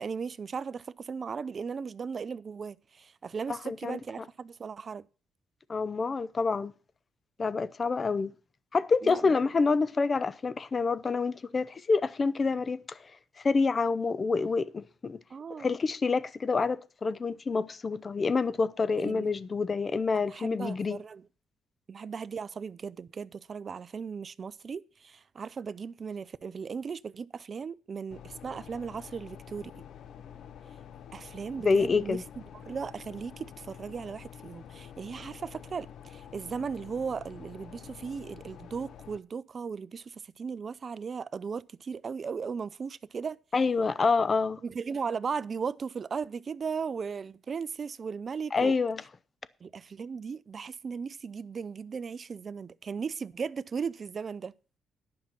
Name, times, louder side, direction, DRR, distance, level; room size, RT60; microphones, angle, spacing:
voice 1, 0.0-5.1 9.0-9.4 15.3-15.8 18.9-19.3 20.1-21.3 21.9-29.8 31.1-32.2 32.7-43.4 44.6-48.7 49.6-54.5, right 6 dB, 45° right, 0.5 m, -37 dB
voice 2, 3.5-4.0 5.7-6.7 7.4-8.3 8.7-13.0 13.4-15.2 15.6-21.0 31.6-32.2 43.5-44.6 48.5-49.0, left 4 dB, 35° left, 0.7 m, -27 dB
sound 1, 28.1-39.2, left 8 dB, 70° left, 0.8 m, -48 dB
10.5 x 5.8 x 7.5 m
cardioid pair, 90°, 0 cm